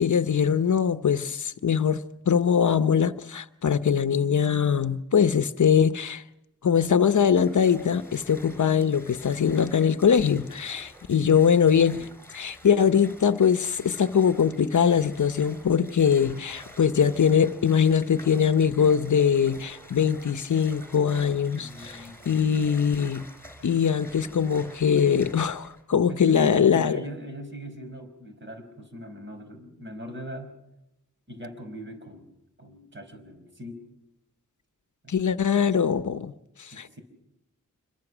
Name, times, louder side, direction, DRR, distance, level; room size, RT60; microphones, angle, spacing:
voice 1, 0.0-6.2 6.6-23.3 23.6-27.0 35.1-36.3 36.6-37.0, left 7 dB, 65° left, 0.9 m, -22 dB
sound 1, 7.3-25.8, left 1 dB, 5° left, 4.3 m, -48 dB
voice 2, 21.5-22.2 23.7-24.3 26.1-30.6 31.3-32.3 32.6-33.8 35.0-35.3 36.7-37.0, equal, 35° right, 4.9 m, -41 dB
27.0 x 22.5 x 6.2 m
wide cardioid pair, 110°, 32 cm